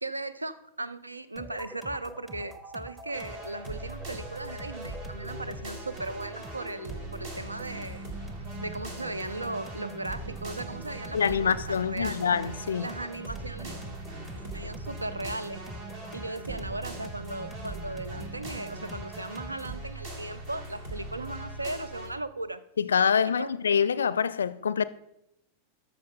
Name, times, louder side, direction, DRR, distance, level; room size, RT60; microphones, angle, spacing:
voice 1, 0.0-8.0 8.6-12.3 12.8-13.7 14.5-15.6 16.1-22.6 23.2-23.5, right 2 dB, 80° right, 0.5 m, -37 dB
sound 1, 1.4-19.8, right 1 dB, 10° right, 0.9 m, -44 dB
sound 2, 3.1-22.1, right 2 dB, 50° right, 2.1 m, -41 dB
voice 2, 11.1-12.9 22.8-24.9, left 7 dB, 70° left, 0.4 m, -25 dB
13.0 x 6.6 x 3.9 m
figure-of-eight pair, 90°, 0 cm